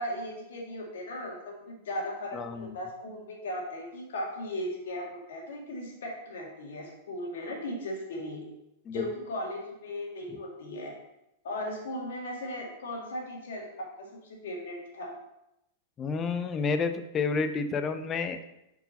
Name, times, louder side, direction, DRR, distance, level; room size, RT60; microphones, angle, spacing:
voice 1, 0.0-8.5 8.9-10.9 11.4-15.1, left 1 dB, 80° left, 0 dB, 1.7 m, -37 dB
voice 2, 2.3-2.8 8.9-9.0 10.3-10.4 16.0-18.4, left 4 dB, 25° left, 8 dB, 0.5 m, -30 dB
5.5 x 4.7 x 4.0 m, 0.86 s
hypercardioid pair, 120°, 0 cm